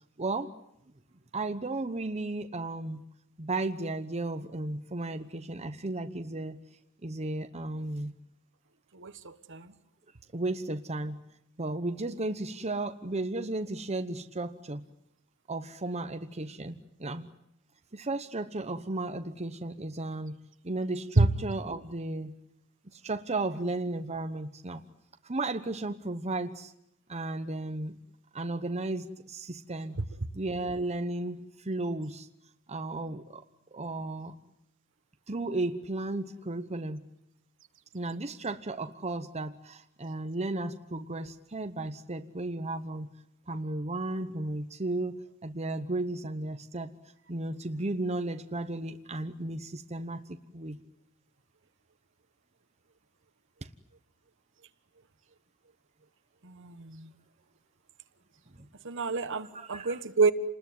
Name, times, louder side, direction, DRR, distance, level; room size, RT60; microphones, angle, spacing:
voice 1, 0.2-0.5 1.3-3.0 3.4-6.6 7.0-8.1 10.3-11.2 11.6-14.8 15.5-17.3 17.9-20.4 20.6-22.3 22.9-24.8 25.2-26.7 27.1-28.0 28.3-30.0 30.3-32.3 32.7-33.4 33.7-34.3 35.3-37.0 37.9-43.1 43.5-46.9 47.3-50.8 58.6-58.7 59.5-60.0, right 2 dB, 30° right, 1.0 m, -34 dB
voice 2, 58.8-60.3, right 3 dB, 60° right, 1.4 m, -25 dB
28.5 x 20.5 x 9.5 m
head